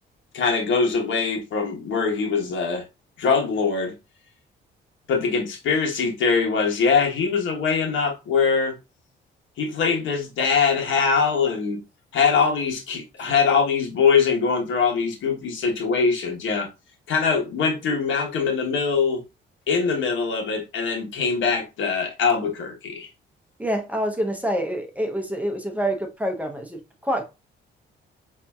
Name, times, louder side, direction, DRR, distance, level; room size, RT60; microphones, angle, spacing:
voice 1, 0.3-2.9 3.2-3.9 5.1-8.7 9.6-11.8 12.1-16.7 17.1-19.2 19.7-23.1, left 5 dB, 75° left, 1.1 m, -22 dB
voice 2, 23.6-27.3, equal, 5° right, 0.7 m, -27 dB
5.1 x 2.7 x 2.3 m
cardioid pair, 90°, 20 cm